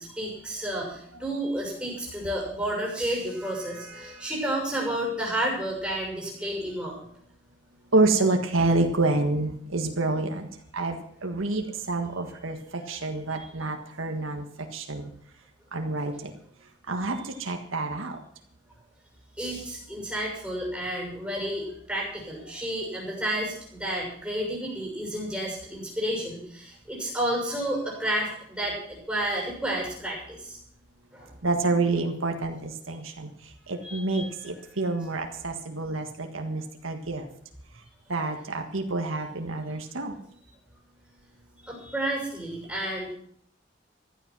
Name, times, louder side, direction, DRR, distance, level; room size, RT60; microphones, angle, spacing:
voice 1, 0.0-7.0 12.8-13.0 13.3-13.5 19.4-30.6 31.1-31.3 33.8-34.5 41.6-43.1, right 1 dB, 5° right, -2 dB, 6.4 m, -31 dB
voice 2, 7.9-14.5 14.7-15.1 15.7-16.3 16.9-18.2 31.4-33.3 33.7-37.3 38.1-40.2, right 2 dB, 85° right, 4 dB, 1.7 m, -28 dB
15.5 x 12.0 x 6.1 m, 0.65 s
head